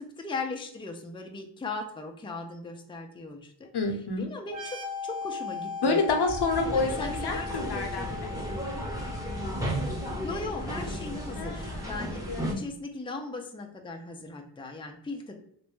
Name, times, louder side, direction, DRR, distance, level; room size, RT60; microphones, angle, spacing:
voice 1, 0.0-3.7 4.2-4.8 5.0-6.0 6.7-8.3 10.2-15.3, left 3 dB, 10° left, 3 dB, 0.6 m, -38 dB
voice 2, 3.7-4.3 5.8-8.3 11.4-12.6, left 3 dB, 60° left, 4 dB, 0.8 m, -29 dB
sound 1, 4.5-12.0, left 5 dB, 85° right, 0.8 m, -39 dB
sound 2, 6.5-12.5, equal, 10° right, 1.1 m, -34 dB
3.2 x 2.6 x 3.1 m, 0.68 s
cardioid pair, 50°, 45 cm